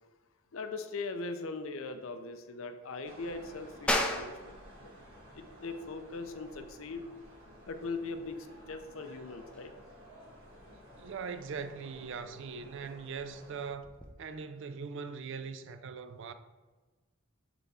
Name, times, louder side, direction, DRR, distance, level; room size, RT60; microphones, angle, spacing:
voice 1, 0.5-4.9 5.3-7.1 7.7-9.7, left 3 dB, 70° left, 0.5 m, -40 dB
sound 1, 3.0-13.7, equal, 85° right, 1.9 m, -54 dB
sound 2, 3.9-14.1, left 1 dB, 5° left, 0.5 m, -40 dB
voice 2, 11.0-13.9 14.2-16.3, right 5 dB, 60° right, 0.4 m, -41 dB
6.9 x 3.5 x 4.2 m
head